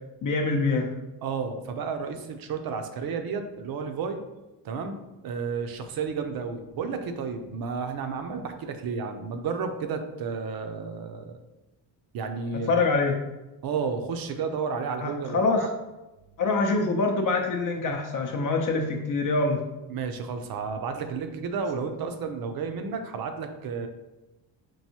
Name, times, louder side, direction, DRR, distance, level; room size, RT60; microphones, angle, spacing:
voice 1, 0.2-0.9 12.5-13.2 15.0-15.7 16.4-19.6, left 3 dB, 45° left, 2 dB, 0.6 m, -25 dB
voice 2, 1.2-4.2 4.6-5.0 5.2-11.4 12.1-12.8 13.6-15.7 19.9-23.9, right 5 dB, 55° right, 7 dB, 0.6 m, -32 dB
4.6 x 2.6 x 2.8 m, 1.0 s
cardioid pair, 115°, 43 cm